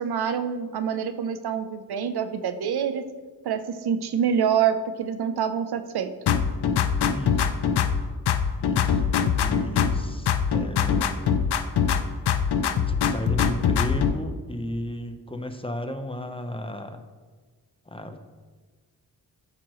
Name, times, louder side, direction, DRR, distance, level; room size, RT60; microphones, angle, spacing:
voice 1, 0.0-3.0 3.4-6.1, right 7 dB, 75° right, 10 dB, 0.7 m, -26 dB
sound 1, 6.3-8.0 8.3-10.0 10.3-12.0 12.3-14.1, left 7 dB, 80° left, 0.7 m, -22 dB
voice 2, 7.1-7.5 8.6-11.5 12.9-17.0 17.9-18.2, left 1 dB, 15° left, 7 dB, 0.9 m, -34 dB
13.5 x 6.0 x 3.1 m, 1.4 s
cardioid pair, 60°, 39 cm